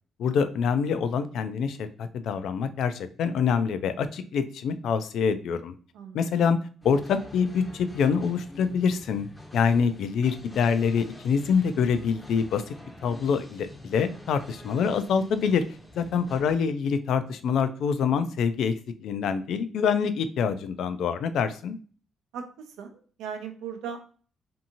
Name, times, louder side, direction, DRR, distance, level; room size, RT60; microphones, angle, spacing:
voice 1, 0.2-5.7 6.1-6.6 6.8-9.3 9.5-12.7 13.0-15.6 16.0-18.7 19.0-21.8, left 6 dB, 75° left, 11 dB, 0.3 m, -25 dB
sound 1, 6.8-16.5, left 1 dB, 10° left, 0.6 m, -46 dB
voice 2, 23.2-24.0, right 7 dB, 90° right, 6 dB, 0.5 m, -36 dB
2.6 x 2.6 x 2.7 m, 0.41 s
cardioid pair, 90°, 0 cm